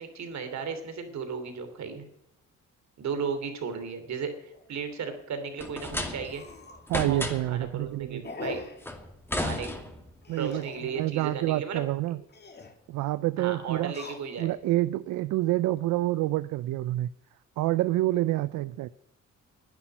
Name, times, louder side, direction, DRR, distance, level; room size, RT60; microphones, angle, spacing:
voice 1, 0.0-2.0 3.0-6.4 7.1-8.6 9.4-9.7 10.4-11.8 12.1-12.2 13.4-14.5, right 6 dB, 65° right, 8 dB, 3.0 m, -35 dB
sound 1, 4.5-4.7 5.1-5.2 5.5-5.6 6.2-6.9 7.3-7.6 8.2-8.9 10.2-11.0 12.2-12.8 13.8-14.6 15.2-15.8, left 3 dB, 35° left, 2.6 m, -42 dB
sound 2, 5.6-6.5 6.9-7.6 8.8-10.2, left 1 dB, 5° left, 2.4 m, -33 dB
voice 2, 6.9-8.3 10.3-10.6 11.0-12.2 12.9-13.9 14.4-17.1 17.6-18.9, right 16 dB, 85° right, 16 dB, 0.5 m, -27 dB
10.5 x 9.9 x 8.8 m, 0.82 s
cardioid pair, 90°, 30 cm